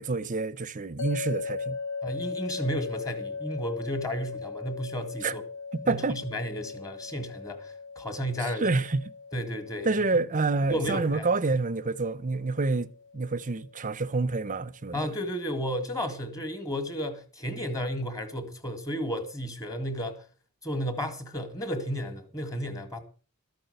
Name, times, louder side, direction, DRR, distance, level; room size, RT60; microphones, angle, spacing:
voice 1, 0.0-1.8 5.2-5.4 5.7-6.2 8.6-9.1 9.8-15.1, right 3 dB, 35° right, 0.7 m, -28 dB
sound 1, 1.0-14.1, left 4 dB, 55° left, 0.9 m, -39 dB
voice 2, 2.0-5.4 5.8-8.7 9.3-9.9 10.7-11.3 14.9-20.2 20.6-23.0, equal, 15° left, 2.0 m, -33 dB
13.5 x 8.9 x 6.7 m
head